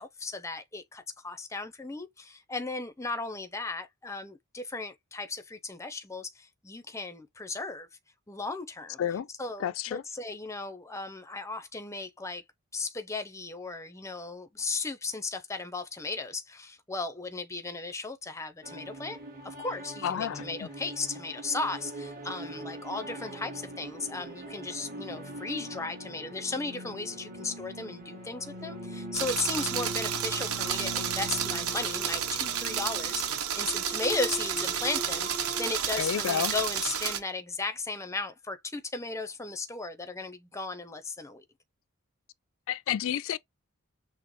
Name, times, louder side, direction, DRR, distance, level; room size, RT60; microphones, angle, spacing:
voice 1, 0.0-7.9 8.3-9.0 9.4-12.4 12.7-19.2 19.4-35.3 35.6-41.4, left 3 dB, 15° left, 0.6 m, -36 dB
voice 2, 9.6-10.0 20.0-20.7 35.9-36.5 42.7-43.4, left 9 dB, 60° left, 0.3 m, -30 dB
sound 1, 18.6-35.8, right 1 dB, 40° right, 1.4 m, -41 dB
sound 2, 29.1-37.2, right 8 dB, 80° right, 1.0 m, -31 dB
6.1 x 2.0 x 3.1 m
head